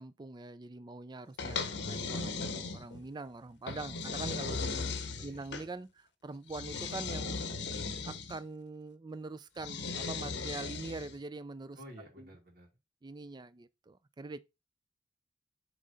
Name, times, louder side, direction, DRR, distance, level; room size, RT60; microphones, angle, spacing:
voice 1, 0.0-4.9 5.2-7.4 8.0-11.8 12.2-12.4 13.0-14.4, right 3 dB, 25° right, 0.4 m, -44 dB
sound 1, 1.4-3.1 3.7-5.7 6.5-8.4 9.6-11.2, left 4 dB, 65° left, 0.8 m, -37 dB
voice 2, 1.5-2.0 4.6-5.5 11.8-12.7, equal, 55° right, 1.8 m, -53 dB
7.4 x 3.2 x 4.0 m
head